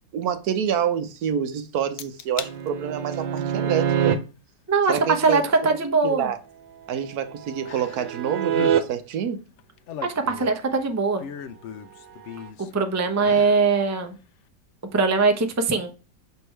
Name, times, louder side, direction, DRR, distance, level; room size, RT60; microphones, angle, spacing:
voice 1, 0.1-4.2 4.9-5.4 6.0-6.4 6.9-9.4, right 8 dB, 65° right, 1.1 m, -27 dB
sound 1, 2.0-2.5 3.0-3.4 4.9-5.0 7.7-8.2 8.5-8.8 9.6-10.7 11.2-12.7 13.2-13.7 14.1-14.2, left 8 dB, 85° left, 0.6 m, -37 dB
sound 2, 2.4-4.2 6.9-8.8 12.2-12.5, right 9 dB, 85° right, 1.4 m, -26 dB
voice 2, 4.7-6.3 10.0-11.2 12.6-14.1 14.9-15.9, right 4 dB, 20° right, 0.4 m, -21 dB
6.9 x 4.6 x 3.2 m
omnidirectional pair, 1.9 m